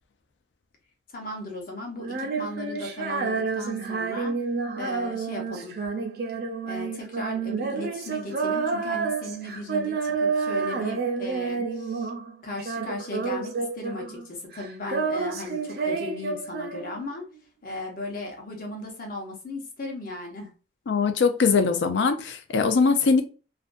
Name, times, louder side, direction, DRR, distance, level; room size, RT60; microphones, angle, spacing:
voice 1, 1.1-4.4 4.8-5.8 6.6-12.1 12.4-17.2 17.6-20.5, left 2 dB, 50° left, 0.8 m, -36 dB
Female singing, 2.0-12.3 12.6-14.3 14.5-17.2, right 5 dB, 55° right, 0.4 m, -29 dB
voice 2, 20.9-23.2, left 5 dB, 80° left, 0.4 m, -21 dB
2.5 x 2.2 x 2.4 m
head